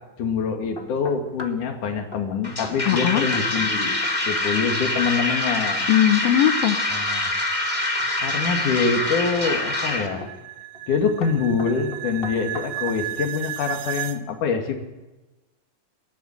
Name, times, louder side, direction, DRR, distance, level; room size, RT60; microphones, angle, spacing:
voice 1, 0.2-5.8 6.9-7.3 8.2-10.3 10.9-14.8, left 5 dB, 55° left, 4 dB, 3.6 m, -25 dB
sound 1, 0.8-1.7 2.1-2.3 2.6-2.8 3.0-3.8 4.0-4.4 7.7-8.4 9.0-9.4 10.2-10.5 10.7-10.9 11.2-13.1, left 1 dB, 40° left, 0.8 m, -40 dB
sound 2, 2.4-10.1, left 1 dB, 15° left, 1.5 m, -25 dB
voice 2, 2.8-3.3 5.9-6.8, left 11 dB, 75° left, 5 dB, 2.7 m, -19 dB
sound 3, 7.0-14.2, right 16 dB, 80° right, 2.9 m, -35 dB
21.0 x 13.5 x 9.3 m, 1.1 s
omnidirectional pair, 4.4 m